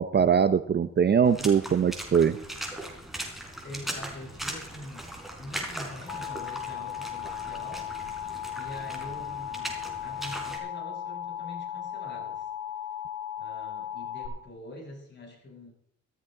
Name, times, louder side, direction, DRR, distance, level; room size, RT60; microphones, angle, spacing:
voice 1, 0.0-2.4, right 7 dB, 35° right, 13 dB, 0.7 m, -22 dB
Water / Splash splatter, 1.2-10.6, right 1 dB, ahead, 3.8 m, -39 dB
voice 2, 3.6-5.1 5.4-7.9 8.5-12.5 13.4-15.7, left 1 dB, 35° left, -1 dB, 7.4 m, -44 dB
Alarm, 6.1-14.3, left 9 dB, 85° left, 4.5 m, -36 dB
15.0 x 13.5 x 3.8 m, 0.69 s
cardioid pair, 90°, 30 cm